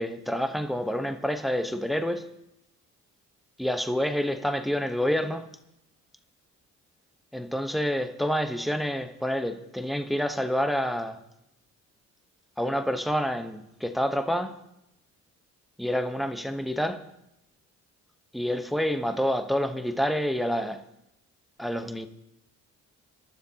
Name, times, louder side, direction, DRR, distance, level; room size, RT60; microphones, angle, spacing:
voice 1, 0.0-2.3 3.6-5.5 7.3-11.2 12.6-14.6 15.8-17.0 18.3-20.8 21.6-22.1, equal, ahead, 1.0 m, -28 dB
27.5 x 12.5 x 2.9 m
cardioid pair, 90°, 30 cm